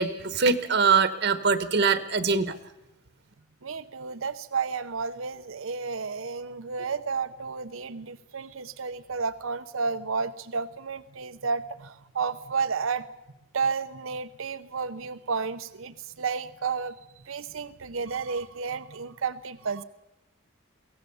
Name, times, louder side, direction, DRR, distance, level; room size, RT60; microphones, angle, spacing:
voice 1, 0.0-2.6, right 5 dB, 55° right, 11 dB, 1.1 m, -23 dB
voice 2, 3.6-13.0 13.5-16.9 17.3-19.8, right 5 dB, 75° right, 12 dB, 0.7 m, -32 dB
23.0 x 17.0 x 7.0 m, 0.92 s
head